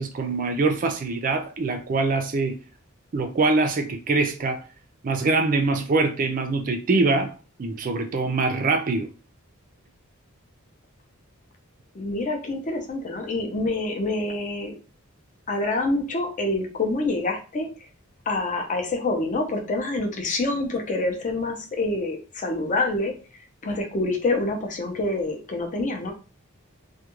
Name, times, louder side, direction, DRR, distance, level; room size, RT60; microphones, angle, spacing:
voice 1, 0.0-2.6 3.1-4.6 5.0-7.3 7.6-9.1, right 3 dB, 40° right, 0.4 m, -23 dB
voice 2, 11.9-14.7 15.5-17.7 18.3-23.1 23.6-26.1, left 2 dB, 35° left, 0.5 m, -26 dB
2.3 x 2.2 x 2.9 m
head